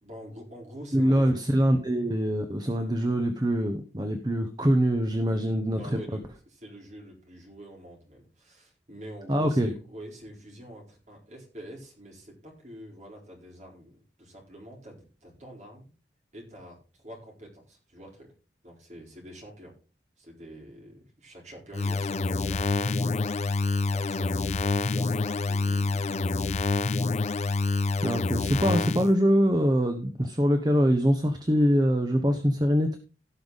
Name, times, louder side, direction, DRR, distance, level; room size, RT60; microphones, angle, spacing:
voice 1, 0.0-1.3 5.7-15.9 16.3-18.3 18.6-19.8 20.2-23.6 23.9-26.5, equal, 40° right, -1 dB, 4.2 m, -46 dB
voice 2, 0.9-5.8 9.3-9.7 28.0-33.0, equal, 20° right, 6 dB, 1.0 m, -24 dB
sound 1, 21.7-29.1, left 3 dB, 40° left, 0.4 m, -27 dB
17.0 x 5.7 x 4.0 m, 0.35 s
head